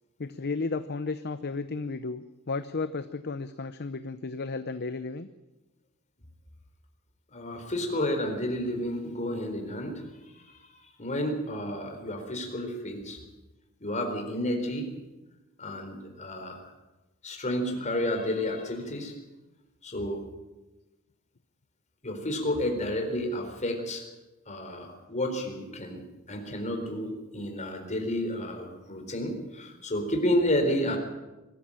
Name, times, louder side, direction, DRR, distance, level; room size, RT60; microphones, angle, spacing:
voice 1, 0.2-5.3, left 3 dB, 50° left, 11 dB, 0.7 m, -33 dB
voice 2, 7.3-10.0 10.3-13.2 13.8-14.9 15.6-16.6 17.2-19.1 19.8-20.2 22.0-24.0 24.5-26.0 26.3-31.0, left 1 dB, 35° left, 4 dB, 4.2 m, -31 dB
22.0 x 14.0 x 8.9 m, 1.1 s
head